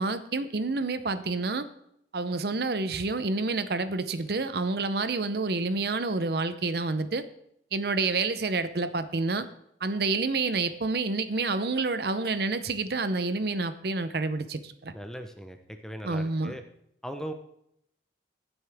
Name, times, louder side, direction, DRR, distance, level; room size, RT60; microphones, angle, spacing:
voice 1, 0.0-1.7 2.1-7.2 7.7-9.5 9.8-14.9 16.0-16.5, right 3 dB, 55° right, 11 dB, 0.7 m, -28 dB
voice 2, 14.9-16.6 17.0-17.3, equal, 5° left, 6 dB, 0.8 m, -39 dB
15.5 x 8.0 x 3.5 m, 0.73 s
head